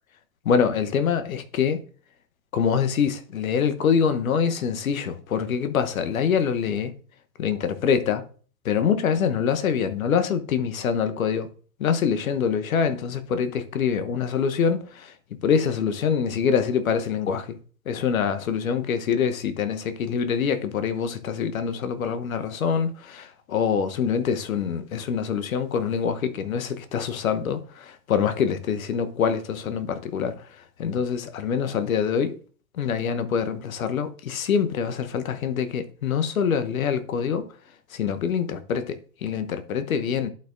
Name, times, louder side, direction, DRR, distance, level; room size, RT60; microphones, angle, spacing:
voice 1, 0.4-1.8 2.5-6.9 7.4-8.2 8.6-11.5 11.8-15.1 15.4-17.6 17.9-32.4 32.7-37.5 37.9-40.3, left 7 dB, 65° left, 1.0 m, -25 dB
11.5 x 4.4 x 2.6 m
figure-of-eight pair, 110°, 46 cm